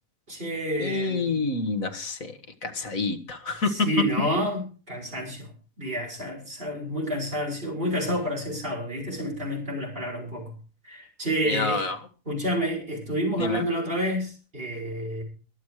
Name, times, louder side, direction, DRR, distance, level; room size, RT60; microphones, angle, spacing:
voice 1, 0.3-1.4 3.7-5.5 5.8-10.5 10.8-11.8 12.2-15.2, equal, 35° right, 0 dB, 6.3 m, -29 dB
voice 2, 0.8-2.3 2.6-3.7 11.5-12.0 13.4-13.6, left 3 dB, 60° left, 7 dB, 2.0 m, -28 dB
23.5 x 8.3 x 4.7 m, 0.35 s
omnidirectional pair, 1.7 m